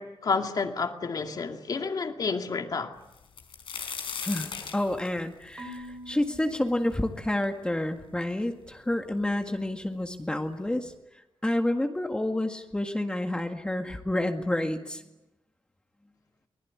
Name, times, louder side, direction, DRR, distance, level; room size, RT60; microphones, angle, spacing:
voice 1, 0.0-2.9, left 4 dB, 50° left, 2.3 m, -30 dB
sound 1, 3.1-6.9 7.4-7.5 8.3-8.4 8.7-9.3 10.2-10.3 10.7-10.9, left 6 dB, 85° left, 4.4 m, -38 dB
voice 2, 4.2-10.9 11.4-15.0, left 1 dB, 10° left, 1.8 m, -29 dB
Marimba xylophone / Wood, 5.6-7.8, equal, 25° right, 4.8 m, -46 dB
24.5 x 20.0 x 9.6 m
wide cardioid pair, 135°, 9 cm